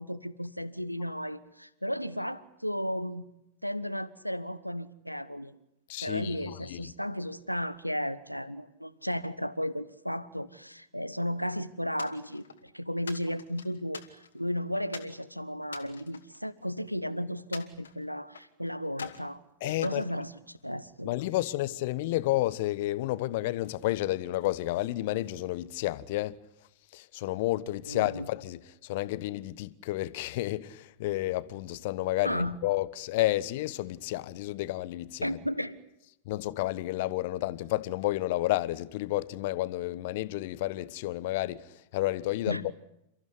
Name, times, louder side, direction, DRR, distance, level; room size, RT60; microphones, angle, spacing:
voice 1, 0.0-3.3 3.6-5.5 6.0-21.1 27.9-28.2 32.2-32.5 35.2-35.8 42.5-42.7, equal, 90° left, 1.3 m, -34 dB
voice 2, 5.9-6.9 19.6-20.0 21.0-26.4 26.9-35.4 36.3-42.7, left 17 dB, 50° left, 1.2 m, -31 dB
sound 1, 12.0-12.6 13.1-14.5 14.9-15.2 15.6-17.0 17.5-18.5 18.9-19.3 19.8-20.9, left 6 dB, 70° left, 2.6 m, -45 dB
30.0 x 15.0 x 10.0 m
figure-of-eight pair, 90°, 0 cm